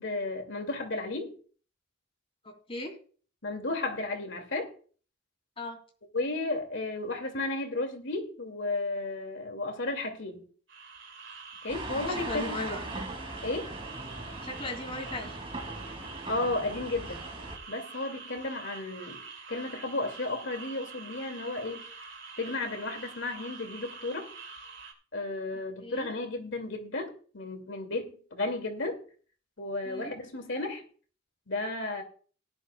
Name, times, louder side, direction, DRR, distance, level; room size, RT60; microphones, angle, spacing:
voice 1, 0.0-1.4 3.4-4.7 6.1-10.4 11.6-12.6 13.4-13.7 16.3-17.3 17.7-19.2 19.5-21.9 22.4-24.3 25.1-29.0 29.6-30.8 31.5-32.0, left 2 dB, 65° left, 5 dB, 2.4 m, -33 dB
voice 2, 2.4-3.0 5.6-5.8 11.9-12.8 14.4-15.4 25.8-26.1 29.8-30.1, left 2 dB, 30° left, 3 dB, 2.8 m, -37 dB
sound 1, 10.7-24.9, right 4 dB, 60° right, 2.4 m, -46 dB
sound 2, 11.7-17.6, right 2 dB, 30° right, 2.5 m, -39 dB
17.5 x 11.0 x 2.3 m, 0.41 s
head